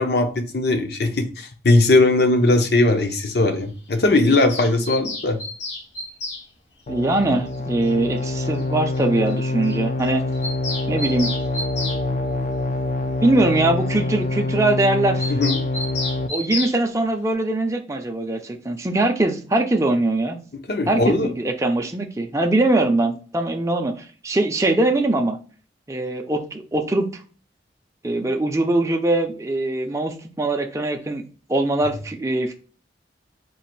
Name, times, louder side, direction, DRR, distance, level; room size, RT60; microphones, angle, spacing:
voice 1, 0.0-5.4 15.3-15.6 20.7-21.3, left 2 dB, 60° left, 0.7 m, -19 dB
Bird vocalization bird call bird song, 4.3-6.4 7.9-8.0 8.2-8.3 8.5-8.6 8.9-9.0 9.3-9.4 9.6-9.8 10.0-12.0 15.2-16.8, left 2 dB, 80° left, 1.1 m, -31 dB
sound 1, 6.9-16.3, left 2 dB, 40° left, 0.4 m, -25 dB
voice 2, 6.9-10.2 10.9-11.3 13.2-15.3 16.3-20.4 20.9-25.4 25.9-27.1 28.0-31.2 31.5-32.5, right 2 dB, 15° right, 0.5 m, -22 dB
3.8 x 2.5 x 4.5 m
head